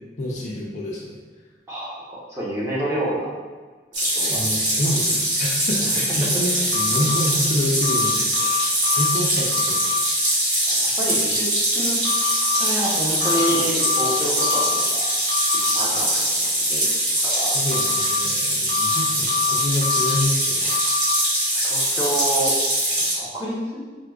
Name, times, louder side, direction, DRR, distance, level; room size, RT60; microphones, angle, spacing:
voice 1, 0.2-1.2 4.2-9.9 17.5-20.8, left 1 dB, 40° left, -4 dB, 0.4 m, -27 dB
voice 2, 1.7-3.4 4.1-4.8 5.8-5.9 6.5-6.8 10.7-12.0 12.5-15.2 15.7-16.9 17.2-17.6 21.6-22.5 23.0-23.8, right 1 dB, 15° right, -8 dB, 0.7 m, -28 dB
sound 1, 3.9-23.1, right 1 dB, 45° right, 0.9 m, -22 dB
sound 2, 6.7-7.2 7.8-9.2 9.5-10.0 12.0-12.6 13.2-14.8 15.3-15.7 17.7-18.2 18.7-20.2 20.7-21.1, left 8 dB, 65° right, 0.6 m, -26 dB
4.5 x 2.1 x 2.3 m, 1.4 s
head